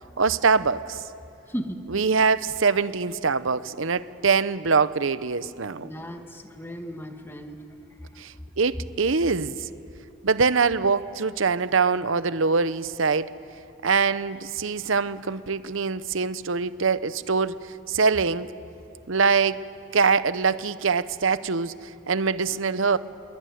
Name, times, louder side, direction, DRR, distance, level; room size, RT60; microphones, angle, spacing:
voice 1, 0.2-1.0 1.9-5.9 8.2-9.7 10.2-13.3 13.8-18.5 19.1-19.6 19.9-23.0, right 5 dB, 75° right, 14 dB, 0.8 m, -23 dB
voice 2, 1.5-1.8 5.8-7.6 8.0-8.1, equal, 10° left, 5 dB, 1.6 m, -36 dB
27.5 x 22.5 x 9.4 m, 2.8 s
head